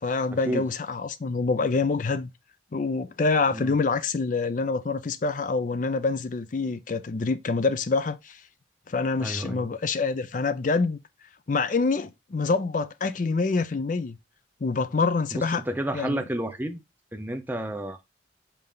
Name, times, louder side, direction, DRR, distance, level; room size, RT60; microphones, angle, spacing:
voice 1, 0.0-2.3 2.7-8.4 8.9-11.0 11.5-14.2 14.6-15.6 15.9-16.2, left 4 dB, 45° left, 0.4 m, -26 dB
voice 2, 9.2-9.7 15.3-16.8 17.1-18.0, right 1 dB, 10° right, 0.7 m, -31 dB
5.6 x 4.4 x 3.8 m
head